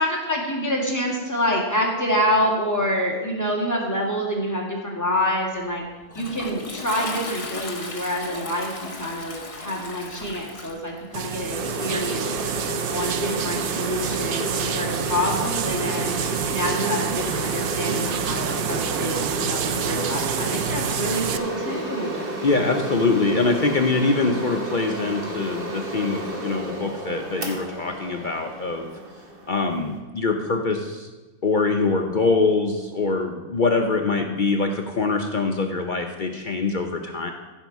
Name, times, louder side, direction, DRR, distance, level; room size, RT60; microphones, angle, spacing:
voice 1, 0.0-5.8 6.2-12.4 12.9-16.2 16.5-22.3, equal, 10° left, -3 dB, 2.0 m, -27 dB
Toilet flush, 5.6-13.9, left 3 dB, 25° left, 0.9 m, -38 dB
sound 1, 11.1-21.4, right 8 dB, 65° right, 0.6 m, -28 dB
sound 2, 11.5-30.0, right 1 dB, 40° right, 1.5 m, -32 dB
voice 2, 22.4-28.9 29.5-31.1 31.4-37.3, left 3 dB, 50° left, 3 dB, 0.6 m, -23 dB
15.5 x 5.3 x 4.6 m, 1.2 s
omnidirectional pair, 1.5 m